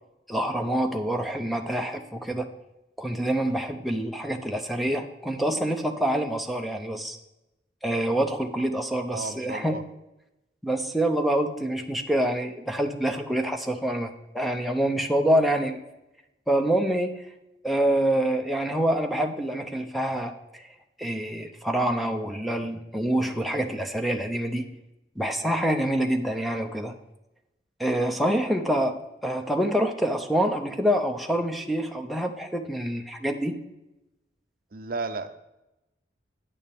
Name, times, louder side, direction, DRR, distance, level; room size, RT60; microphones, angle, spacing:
voice 1, 0.3-2.5 3.0-7.2 7.8-9.8 10.6-15.8 16.5-17.2 17.6-20.7 21.0-24.7 25.2-26.9 27.8-33.6, right 1 dB, ahead, 3 dB, 0.7 m, -26 dB
voice 2, 9.1-9.8 34.7-35.3, right 3 dB, 55° right, 9 dB, 0.6 m, -33 dB
9.9 x 9.3 x 3.5 m, 0.94 s
head